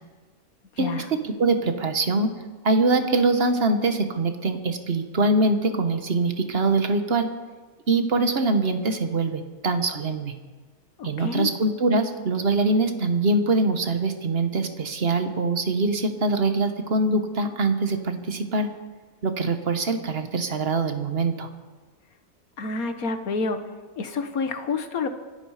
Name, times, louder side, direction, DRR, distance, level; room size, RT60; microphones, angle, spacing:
voice 1, 1.2-2.3 2.6-7.3 7.9-10.4 11.0-18.7 19.2-21.5, right 3 dB, 45° right, 8 dB, 1.5 m, -23 dB
voice 2, 11.0-11.5 22.6-23.6 24.0-25.1, left 4 dB, 85° left, 7 dB, 1.8 m, -28 dB
25.0 x 11.5 x 5.0 m, 1.3 s
omnidirectional pair, 1.5 m